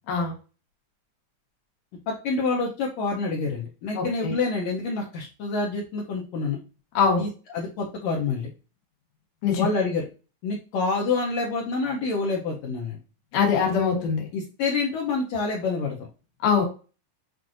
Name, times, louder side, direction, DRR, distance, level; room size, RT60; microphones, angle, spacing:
voice 1, 2.1-6.6 7.2-8.5 9.6-10.1 10.4-13.0 14.3-16.1, left 4 dB, 75° left, -2 dB, 1.8 m, -27 dB
voice 2, 4.0-4.3 6.9-7.3 9.4-9.7 13.3-14.2 16.4-16.6, left 6 dB, 90° left, 1 dB, 2.7 m, -22 dB
7.4 x 2.5 x 2.5 m, 0.35 s
omnidirectional pair, 3.5 m